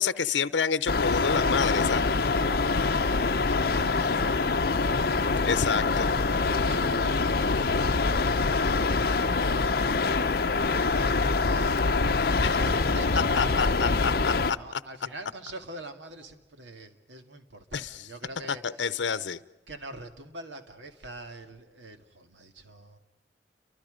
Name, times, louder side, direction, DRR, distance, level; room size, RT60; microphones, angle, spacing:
voice 1, 0.0-2.0 5.5-6.1 12.4-12.5 13.4-14.6 17.7-17.8 18.6-19.4, left 6 dB, 90° left, 15 dB, 0.7 m, -28 dB
sound 1, 0.9-14.5, left 3 dB, 55° left, 0.7 m, -25 dB
voice 2, 2.3-5.5 6.3-19.0 19.7-23.0, right 2 dB, 90° right, 6 dB, 2.2 m, -45 dB
29.5 x 24.0 x 5.2 m, 1.1 s
head